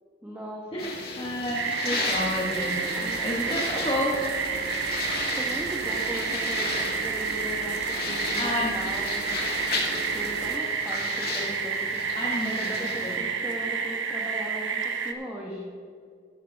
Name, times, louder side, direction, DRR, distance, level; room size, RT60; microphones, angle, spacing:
voice 1, 0.2-1.0 2.9-3.6 5.3-15.7, right 1 dB, 10° right, -4 dB, 1.1 m, -38 dB
voice 2, 0.7-4.2 8.4-8.7 12.2-13.2, left 1 dB, 25° left, -3 dB, 1.2 m, -31 dB
sound 1, 0.8-13.2, left 3 dB, 50° left, 1.9 m, -35 dB
sound 2, 1.5-15.1, right 5 dB, 80° right, 0.8 m, -30 dB
sound 3, 2.1-10.6, right 5 dB, 55° right, 0.4 m, -39 dB
13.0 x 11.0 x 3.4 m, 2.2 s
head